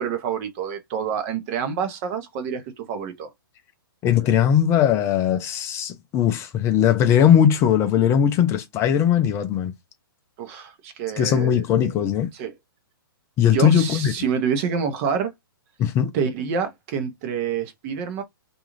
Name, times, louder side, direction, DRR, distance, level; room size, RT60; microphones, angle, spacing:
voice 1, 0.0-3.3 10.4-11.6 12.3-12.5 13.5-15.3 16.1-18.2, right 7 dB, 40° right, 0.8 m, -27 dB
voice 2, 4.0-9.7 11.2-12.3 13.4-14.1 15.8-16.1, left 9 dB, 25° left, 0.4 m, -19 dB
2.5 x 2.3 x 3.0 m
hypercardioid pair, 130°, 12 cm